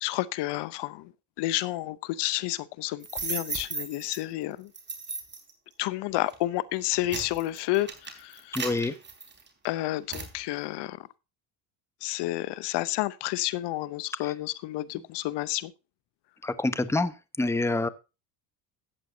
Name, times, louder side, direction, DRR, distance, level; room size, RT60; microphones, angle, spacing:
voice 1, 0.0-1.1 1.4-4.7 5.8-8.7 9.6-11.0 12.0-15.7, left 16 dB, 60° left, 0.8 m, -30 dB
sound 1, 3.0-4.2 4.7-5.5 6.1-6.4 6.8-9.7 10.1-10.3, right 4 dB, 25° right, 3.9 m, -35 dB
voice 2, 8.5-8.9 16.4-17.1 17.4-17.9, left 2 dB, 5° left, 0.9 m, -26 dB
14.0 x 8.6 x 2.8 m
supercardioid pair, 85°, 46 cm